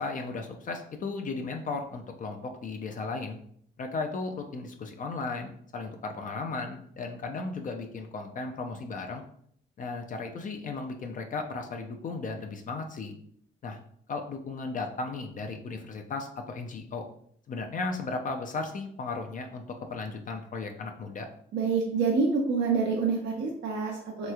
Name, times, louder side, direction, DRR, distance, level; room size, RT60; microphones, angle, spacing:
voice 1, 0.0-3.4 3.8-9.2 9.8-13.1 13.6-13.8 14.1-17.0 17.5-21.3, left 3 dB, 40° left, 4 dB, 0.4 m, -35 dB
voice 2, 21.5-24.3, right 4 dB, 65° right, -1 dB, 0.6 m, -27 dB
3.2 x 3.0 x 2.3 m, 0.65 s
cardioid pair, 90°, 20 cm